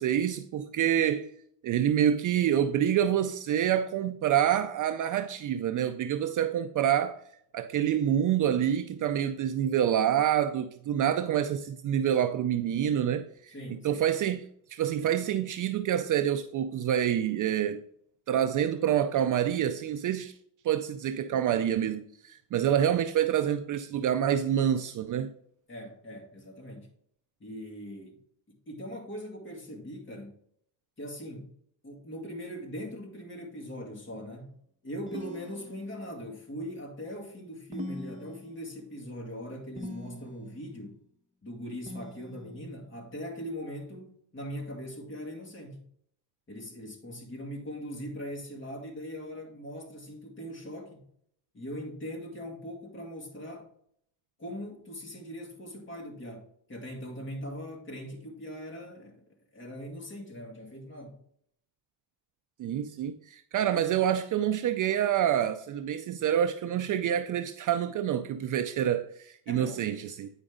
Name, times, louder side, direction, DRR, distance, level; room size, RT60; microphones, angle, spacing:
voice 1, 0.0-1.3 1.6-7.2 7.5-13.3 13.8-14.4 14.7-17.8 18.3-20.3 20.6-25.3 62.6-70.3, right 10 dB, 45° right, 0.4 m, -27 dB
voice 2, 13.5-14.0 25.7-26.9 27.4-28.2 28.7-30.3 31.0-31.5 31.8-34.6 34.8-41.0 41.4-45.9 46.5-51.0 51.5-53.7 54.4-59.3 59.5-61.2 69.5-69.9, equal, 25° left, 2.1 m, -41 dB
sound 1, 35.1-36.2 37.7-38.9 39.8-40.6 41.9-42.8, left 1 dB, 15° right, 1.1 m, -42 dB
8.9 x 5.2 x 3.7 m
cardioid pair, 140°, 45 cm